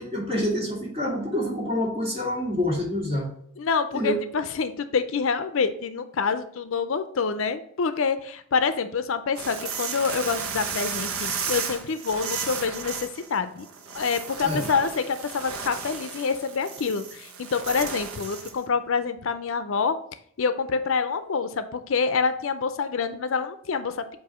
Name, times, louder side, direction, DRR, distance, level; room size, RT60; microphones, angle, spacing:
voice 1, 0.0-3.3 3.9-4.2 14.4-14.7, left 1 dB, 25° right, -3 dB, 2.1 m, -27 dB
voice 2, 3.6-13.7 13.9-20.0 20.4-24.0, left 5 dB, 65° left, 10 dB, 0.5 m, -27 dB
sound 1, 9.3-18.6, right 6 dB, 80° right, 0.9 m, -34 dB
7.8 x 2.6 x 4.8 m, 0.66 s
head